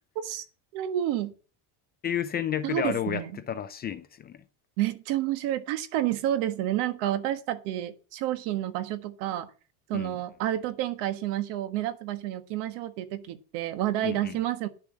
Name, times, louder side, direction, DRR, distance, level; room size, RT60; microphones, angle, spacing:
voice 1, 0.7-1.3 2.6-3.3 4.8-9.5 9.9-14.7, right 13 dB, 65° right, 1.6 m, -29 dB
voice 2, 2.0-4.4 9.9-10.2 14.0-14.4, left 9 dB, 20° left, 0.5 m, -31 dB
11.0 x 7.0 x 6.2 m
cardioid pair, 170°, 44 cm